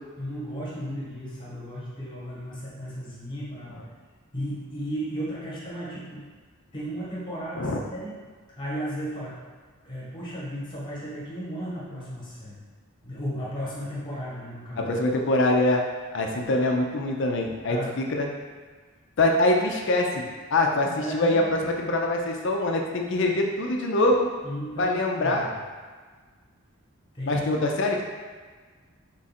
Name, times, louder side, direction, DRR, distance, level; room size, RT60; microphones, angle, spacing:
voice 1, 0.2-3.7 4.3-6.3 6.7-8.2 8.6-9.4 9.8-12.6 13.0-14.9 17.7-18.0 20.8-21.5 24.4-25.4 27.1-27.4, equal, 20° left, -7 dB, 1.0 m, -34 dB
voice 2, 14.8-15.8 16.1-18.3 19.2-20.2 20.5-24.3 24.8-25.5 27.3-28.0, left 2 dB, 55° left, 1 dB, 0.5 m, -24 dB
3.8 x 2.5 x 4.2 m, 1.5 s
head